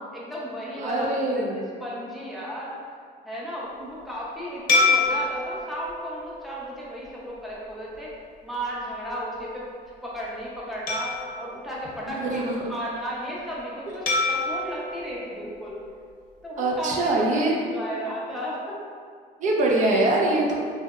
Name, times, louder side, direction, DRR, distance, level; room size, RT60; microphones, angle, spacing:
voice 1, 0.1-2.8 3.2-8.1 8.4-9.7 10.0-15.8 16.4-18.8, equal, ahead, -6 dB, 0.5 m, -34 dB
voice 2, 0.8-1.6 12.0-12.7 13.9-14.0 16.6-17.6 19.4-20.5, right 2 dB, 50° right, -1 dB, 0.5 m, -23 dB
sound 1, 4.7-7.4 7.9-8.1 10.9-12.7 14.1-16.3, left 3 dB, 50° left, 0.6 m, -28 dB
2.7 x 2.0 x 2.3 m, 2.1 s
cardioid pair, 110°, 17 cm